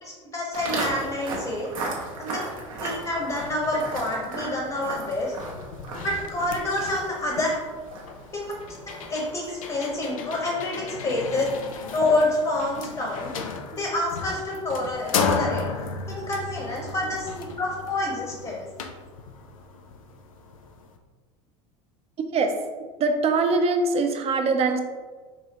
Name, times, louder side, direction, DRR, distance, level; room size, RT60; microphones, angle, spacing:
voice 1, 0.0-2.5 2.8-5.3 6.0-7.5 8.3-8.5 9.1-11.5 11.9-13.3 13.7-15.6 16.1-18.7, left 2 dB, 30° left, -2 dB, 1.0 m, -27 dB
Walk footsteps, 0.5-9.7, right 3 dB, 80° right, 0.8 m, -36 dB
sound 1, 2.6-2.7 3.0-21.0, left 5 dB, 85° left, 0.4 m, -35 dB
voice 2, 22.2-22.5 23.0-24.8, right 3 dB, 35° right, 5 dB, 0.5 m, -23 dB
4.9 x 2.6 x 2.9 m, 1.4 s
hypercardioid pair, 80°, 17 cm